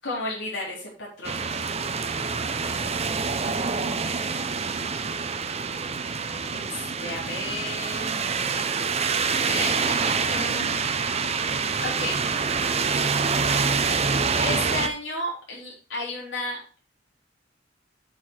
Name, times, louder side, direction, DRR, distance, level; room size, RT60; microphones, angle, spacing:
voice 1, 0.0-1.6 6.5-8.3 9.4-10.9 11.8-12.2 14.4-16.8, left 1 dB, 80° left, -4 dB, 3.9 m, -33 dB
sound 1, 1.2-14.9, right 5 dB, 35° right, 0.7 m, -26 dB
8.3 x 6.7 x 4.5 m, 0.37 s
head